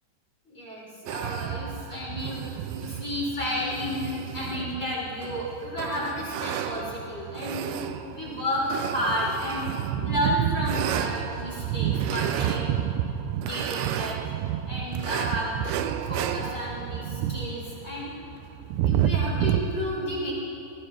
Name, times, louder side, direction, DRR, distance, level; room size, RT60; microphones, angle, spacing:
voice 1, 0.5-2.5 2.8-7.8 8.1-9.7 10.0-12.7 13.4-14.2 14.7-18.1 18.8-20.3, left 1 dB, 15° left, -6 dB, 6.3 m, -32 dB
sound 1, 1.1-19.6, right 10 dB, 80° right, 2.9 m, -30 dB
29.0 x 20.0 x 4.8 m, 3.0 s
omnidirectional pair, 5.3 m